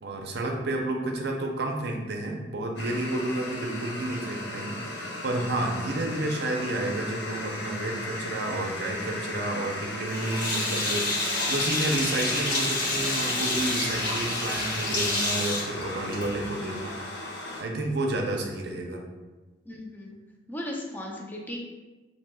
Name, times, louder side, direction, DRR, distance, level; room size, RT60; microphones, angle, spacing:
voice 1, 0.0-17.0 17.6-19.0, right 1 dB, 65° right, 1 dB, 0.6 m, -30 dB
sound 1, 2.8-17.6, left 2 dB, 70° left, 0.6 m, -37 dB
Sink (filling or washing), 10.1-16.5, left 2 dB, 50° left, 1.4 m, -28 dB
voice 2, 16.4-16.7 19.7-20.2 20.5-21.6, left 1 dB, 10° left, -1 dB, 0.5 m, -37 dB
5.7 x 2.8 x 2.2 m, 1.2 s
head